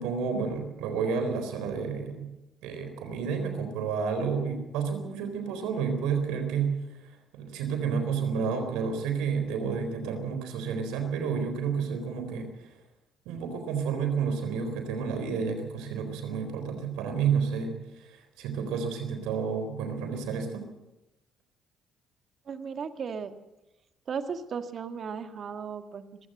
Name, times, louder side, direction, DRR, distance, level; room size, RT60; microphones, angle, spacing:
voice 1, 0.0-2.3 2.6-12.7 13.3-20.6, right 6 dB, 80° right, 7 dB, 4.0 m, -30 dB
voice 2, 22.5-23.3 24.1-26.3, right 6 dB, 55° right, 9 dB, 1.7 m, -36 dB
20.5 x 16.0 x 7.8 m, 0.97 s
hypercardioid pair, 55°, 0 cm